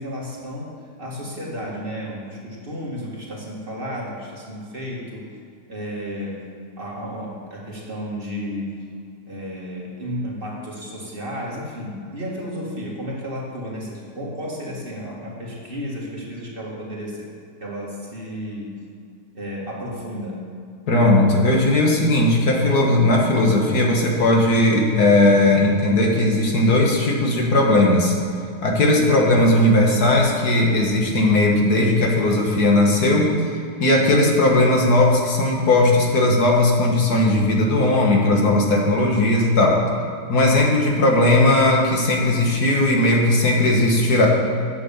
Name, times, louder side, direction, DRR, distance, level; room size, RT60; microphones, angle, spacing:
voice 1, 0.0-5.2 5.7-6.5 6.8-8.8 9.3-17.3 17.6-18.8 19.3-20.4 28.9-29.2, equal, 30° right, -4 dB, 2.1 m, -32 dB
voice 2, 20.9-28.2 28.6-39.8 40.3-44.3, left 1 dB, 65° left, -1 dB, 1.9 m, -17 dB
9.8 x 6.9 x 7.0 m, 2.4 s
omnidirectional pair, 1.8 m